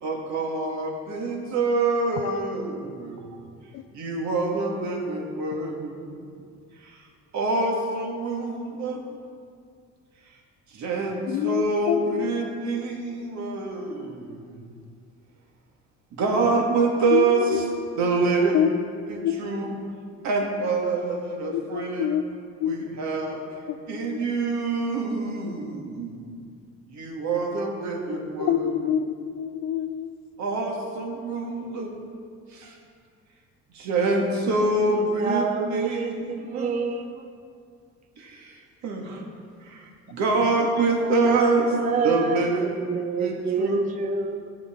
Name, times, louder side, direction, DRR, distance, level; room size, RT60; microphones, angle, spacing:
voice 1, 0.0-3.5 3.9-6.4 6.8-7.0 7.3-9.0 10.7-14.7 16.1-17.7 18.0-18.6 19.1-19.8 20.2-22.1 22.6-23.4 23.9-26.3 26.9-28.7 30.4-31.9 32.5-32.7 33.7-36.8 38.2-39.3 39.6-43.3 43.6-43.8, right 3 dB, 65° right, 1 dB, 1.8 m, -26 dB
voice 2, 11.3-12.3 17.1-17.6 18.5-18.8 19.2-19.8 20.2-20.3 21.5-22.2 22.6-22.9 23.7-24.2 28.1-30.1, left 10 dB, 65° left, 12 dB, 0.5 m, -27 dB
voice 3, 34.9-37.2 41.0-42.4 42.8-44.5, right 4 dB, 25° right, 6 dB, 0.5 m, -28 dB
13.5 x 6.6 x 3.7 m, 2.2 s
cardioid pair, 115°, 30 cm